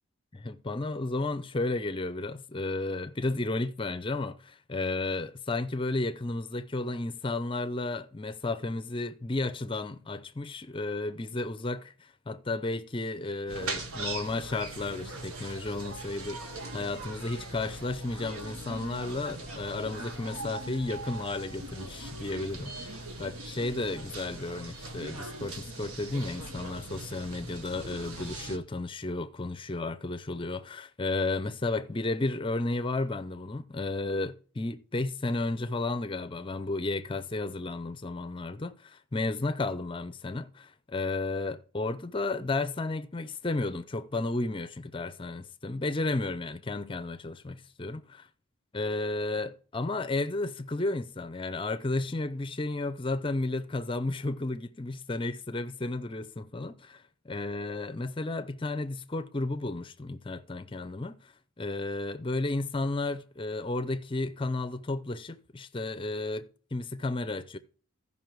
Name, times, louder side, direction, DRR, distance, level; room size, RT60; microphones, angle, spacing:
voice 1, 0.3-22.9 23.2-48.2 48.7-67.6, left 2 dB, 25° left, 0.5 m, -33 dB
sound 1, 13.5-28.6, right 2 dB, 75° right, 1.3 m, -40 dB
15.0 x 5.6 x 4.6 m
head